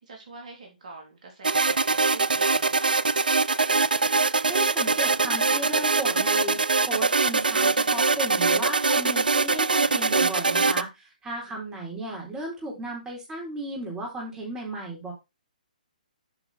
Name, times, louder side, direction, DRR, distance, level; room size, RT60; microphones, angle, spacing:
voice 1, 0.0-2.9 11.5-11.6, right 3 dB, 55° right, 3.5 m, -45 dB
sound 1, 1.4-10.8, right 4 dB, 80° right, 0.5 m, -23 dB
voice 2, 4.5-6.6 6.9-15.1, right 1 dB, 15° right, 4.3 m, -35 dB
8.3 x 5.9 x 4.4 m
figure-of-eight pair, 140°, 5 cm